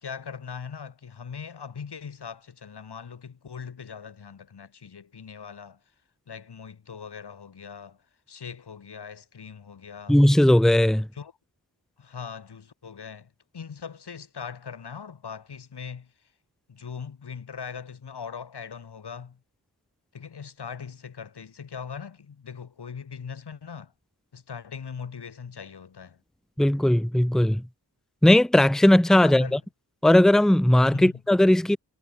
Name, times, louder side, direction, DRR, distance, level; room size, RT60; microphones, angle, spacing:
voice 1, 0.0-5.8 6.3-10.2 11.1-11.3 12.0-16.1 16.7-19.4 20.1-23.9 24.3-26.2 29.2-29.6 30.9-31.1, left 6 dB, 90° left, 2.6 m, -40 dB
voice 2, 10.1-11.1 26.6-27.6 28.2-29.6 30.0-31.8, left 1 dB, ahead, 0.8 m, -18 dB
wide cardioid pair, 85°, 39 cm